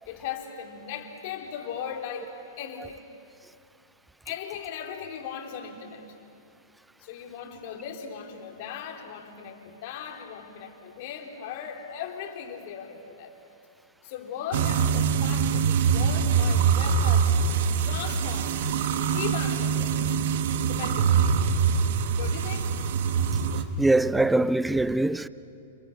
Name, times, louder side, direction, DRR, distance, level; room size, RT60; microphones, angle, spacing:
voice 1, 0.0-3.0 4.2-6.0 7.0-13.3 14.0-17.3 17.8-18.6 19.0-20.0 20.7-21.3 21.8-22.8, left 8 dB, 50° left, 3.2 m, -38 dB
sound 1, 14.5-23.6, right 6 dB, 60° right, 1.4 m, -24 dB
voice 2, 23.8-25.3, right 2 dB, 5° right, 0.6 m, -22 dB
28.5 x 27.5 x 6.6 m
hypercardioid pair, 115°, 0 cm